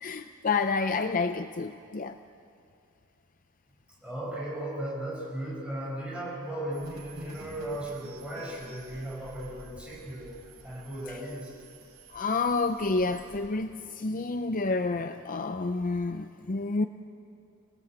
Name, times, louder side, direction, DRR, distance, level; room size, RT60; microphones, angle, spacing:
voice 1, 0.0-2.2 12.1-16.9, left 3 dB, 35° left, 9 dB, 0.5 m, -29 dB
voice 2, 4.0-11.5, right 1 dB, 5° right, -4 dB, 5.7 m, -36 dB
sound 1, 6.7-13.5, right 1 dB, 75° right, 5.6 m, -50 dB
26.5 x 19.5 x 8.9 m, 2.5 s
head